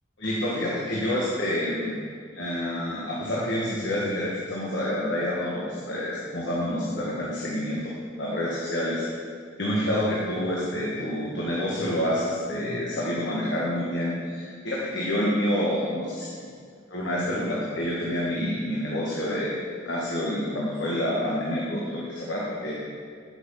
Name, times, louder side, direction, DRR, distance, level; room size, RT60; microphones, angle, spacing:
voice 1, 0.2-2.0 2.3-7.9 8.2-9.0 9.6-16.3 16.9-19.5 19.8-22.7, left 1 dB, 75° left, -6 dB, 1.6 m, -28 dB
7.8 x 7.7 x 5.7 m, 2.1 s
head